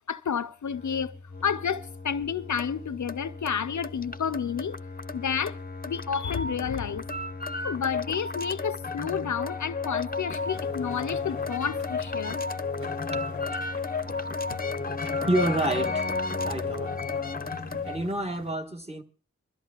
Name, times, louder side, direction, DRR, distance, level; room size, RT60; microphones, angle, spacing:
voice 1, 0.1-1.2 1.4-4.8 5.1-5.6 5.9-7.1 7.6-12.4, left 7 dB, 80° left, 0.5 m, -30 dB
sound 1, 0.7-18.1, left 4 dB, 30° left, 0.6 m, -33 dB
sound 2, 10.3-18.5, right 1 dB, 70° right, 5.3 m, -49 dB
voice 2, 15.2-16.2 16.4-17.0 17.8-19.0, right 1 dB, 20° right, 1.5 m, -28 dB
23.5 x 13.5 x 2.3 m
wide cardioid pair, 45°, 29 cm